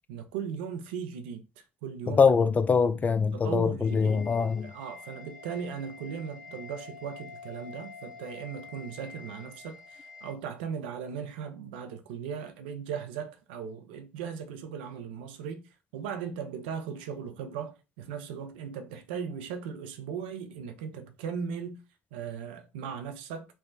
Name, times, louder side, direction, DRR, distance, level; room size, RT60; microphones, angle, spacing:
voice 1, 0.1-2.2 3.3-4.3 4.6-15.6 15.9-21.8 22.1-23.5, right 7 dB, 75° right, 0.5 m, -38 dB
voice 2, 2.1-4.7, left 5 dB, 30° left, 0.3 m, -23 dB
sound 1, 3.8-10.3, left 5 dB, 10° right, 1.0 m, -47 dB
3.2 x 2.1 x 2.6 m
hypercardioid pair, 60°, 6 cm